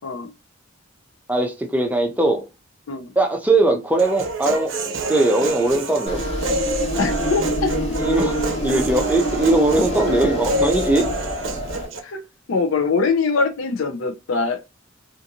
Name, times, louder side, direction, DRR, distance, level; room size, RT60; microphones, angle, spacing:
voice 1, 1.3-2.4 3.2-4.7 5.1-6.2 8.0-8.4 8.6-11.1, right 2 dB, 10° right, 0.5 m, -20 dB
Human voice, 4.0-12.0, right 1 dB, 65° right, 0.5 m, -27 dB
sound 1, 6.1-11.8, equal, 30° left, 0.9 m, -26 dB
voice 2, 7.0-7.7 12.0-12.2 12.5-14.6, left 4 dB, 80° left, 0.5 m, -22 dB
2.5 x 2.5 x 2.7 m
head